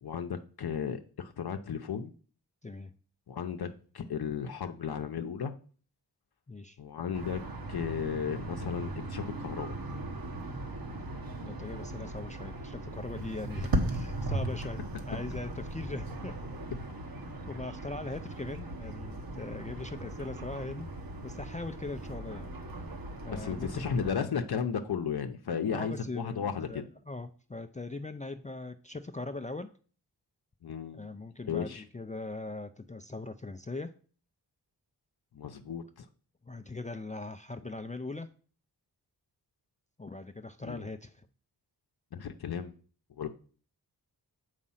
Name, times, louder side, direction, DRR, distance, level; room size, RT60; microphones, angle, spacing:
voice 1, 0.0-2.1 3.3-5.5 6.8-7.4 7.7-9.8 23.3-26.9 30.6-31.1 31.5-31.8 35.3-36.1 40.6-40.9 42.1-42.7 43.2-43.3, left 7 dB, 65° left, 6 dB, 0.7 m, -34 dB
voice 2, 6.5-6.8 11.4-16.4 17.5-20.9 21.2-22.5 23.2-24.1 25.7-29.7 30.9-33.9 36.4-38.3 40.0-41.3, left 3 dB, 20° left, 8 dB, 0.4 m, -40 dB
sound 1, 7.1-24.1, right 1 dB, 60° right, 1.3 m, -38 dB
7.4 x 5.0 x 5.6 m, 0.41 s
wide cardioid pair, 100°, 41 cm